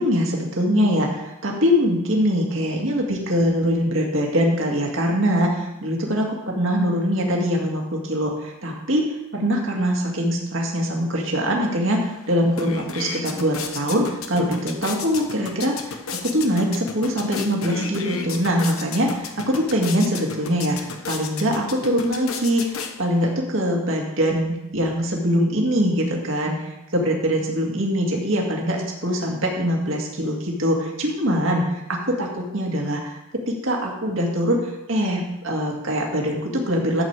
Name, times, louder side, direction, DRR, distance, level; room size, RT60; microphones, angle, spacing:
voice 1, 0.0-9.0 9.3-33.2 33.5-37.0, equal, 65° right, -1 dB, 2.1 m, -23 dB
sound 1, 12.0-12.1 12.4-23.3, left 5 dB, 80° left, 1.1 m, -34 dB
12.5 x 8.2 x 4.8 m, 0.92 s
head